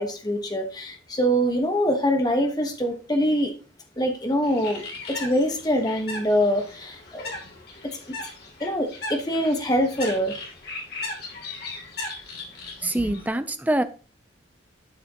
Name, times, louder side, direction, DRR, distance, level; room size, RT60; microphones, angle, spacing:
voice 1, 0.0-3.5 4.0-7.3 8.6-10.3, equal, 20° left, 4 dB, 1.2 m, -24 dB
Bird, 4.4-13.3, left 3 dB, 55° left, 2.9 m, -38 dB
voice 2, 12.8-13.8, right 1 dB, 10° right, 10 dB, 0.5 m, -24 dB
12.0 x 6.1 x 2.9 m, 0.35 s
head